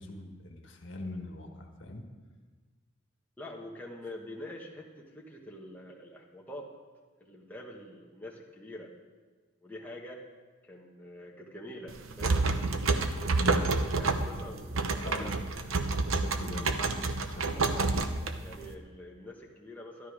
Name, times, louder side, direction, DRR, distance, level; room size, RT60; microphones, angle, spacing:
voice 1, 0.0-2.0 13.3-13.6 15.0-15.4 15.7-15.8 16.2-17.8, left 1 dB, 65° left, 2 dB, 1.6 m, -42 dB
voice 2, 3.4-6.7 7.2-8.9 9.6-10.2 10.6-12.5 13.3-13.6 13.9-15.5 17.5-17.9 18.4-20.1, left 1 dB, 10° left, -3 dB, 1.3 m, -45 dB
sound 1, 11.9-18.7, right 3 dB, 85° right, 0.9 m, -29 dB
13.0 x 12.0 x 5.0 m, 1.4 s
head